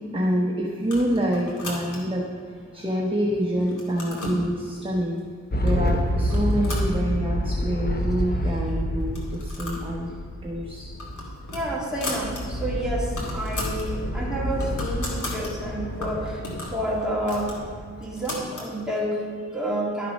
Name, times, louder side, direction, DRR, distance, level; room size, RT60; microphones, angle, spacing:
voice 1, 0.1-2.2 2.7-5.2 5.6-10.1 10.4-10.9 12.0-12.1, equal, 20° right, -2 dB, 1.1 m, -26 dB
sound 1, 0.8-2.2 2.8-3.3 3.6-4.4 5.2-5.3 5.7-5.9 6.3-7.5 7.8-7.9 8.2-8.3 9.0-9.9 10.2-10.4 10.8-12.4 12.8-12.9 13.0-13.9 14.3-15.5 16.0-18.7, left 2 dB, 90° left, 2.3 m, -36 dB
sound 2, 5.5-18.3, equal, 30° left, 1.0 m, -29 dB
voice 2, 11.5-16.4 16.7-17.5 18.0-20.1, right 1 dB, ahead, -5 dB, 2.5 m, -29 dB
12.0 x 6.7 x 5.3 m, 2.2 s
wide cardioid pair, 105°, 30 cm